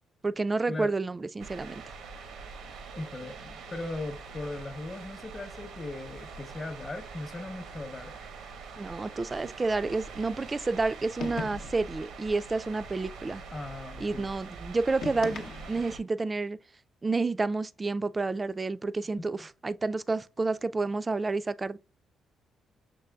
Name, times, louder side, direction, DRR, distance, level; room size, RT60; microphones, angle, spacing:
voice 1, 0.2-1.8 8.8-13.4 14.0-16.6 17.0-21.8, right 3 dB, 25° right, 0.3 m, -30 dB
sound 1, 1.4-16.0, right 4 dB, 80° right, 0.8 m, -44 dB
voice 2, 2.9-8.1 13.5-14.3 19.2-19.3, left 2 dB, 30° left, 0.8 m, -38 dB
sound 2, 11.2-11.9 15.0-16.0, left 5 dB, 70° left, 0.7 m, -38 dB
6.7 x 3.2 x 2.3 m
cardioid pair, 90°, 0 cm